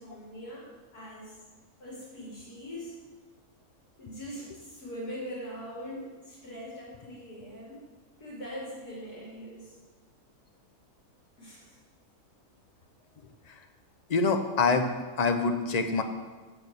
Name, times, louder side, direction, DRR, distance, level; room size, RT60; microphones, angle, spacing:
voice 1, 0.0-1.4 1.8-3.0 4.0-7.9 8.2-9.8 11.4-11.8, equal, 85° left, -5 dB, 3.3 m, -42 dB
voice 2, 14.1-16.0, left 4 dB, 35° left, 6 dB, 0.7 m, -25 dB
7.7 x 6.9 x 8.1 m, 1.3 s
omnidirectional pair, 1.6 m